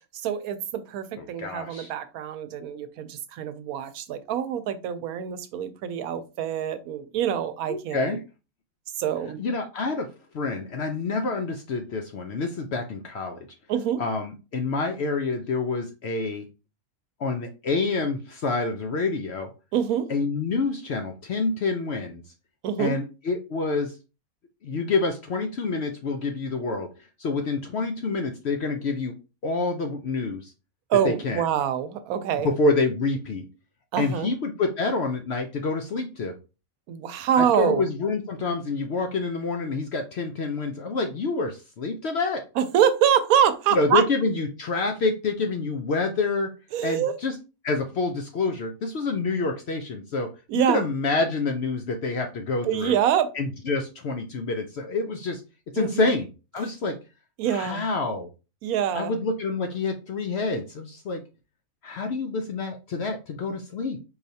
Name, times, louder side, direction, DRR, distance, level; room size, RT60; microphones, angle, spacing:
voice 1, 0.1-8.0 9.0-9.4 13.7-14.0 19.7-20.1 22.6-22.9 30.9-32.5 33.9-34.3 36.9-37.9 42.6-44.0 46.7-47.2 50.5-50.8 52.6-53.3 55.8-56.1 57.4-57.8 58.6-59.1, right 9 dB, 80° right, 1.1 m, -25 dB
voice 2, 1.2-1.9 7.7-8.2 9.4-10.1 10.3-13.5 14.0-16.5 17.2-19.5 20.1-22.2 22.8-23.9 24.6-26.9 27.2-29.1 29.4-30.5 31.0-31.4 32.4-33.5 34.0-36.3 37.4-42.4 43.7-46.5 46.8-47.4 47.6-50.3 50.7-53.0 53.4-55.4 55.7-56.3 56.5-57.0 57.5-58.3 58.9-61.2 61.8-64.0, left 3 dB, 60° left, 0.7 m, -27 dB
4.6 x 3.2 x 2.7 m
omnidirectional pair, 1.5 m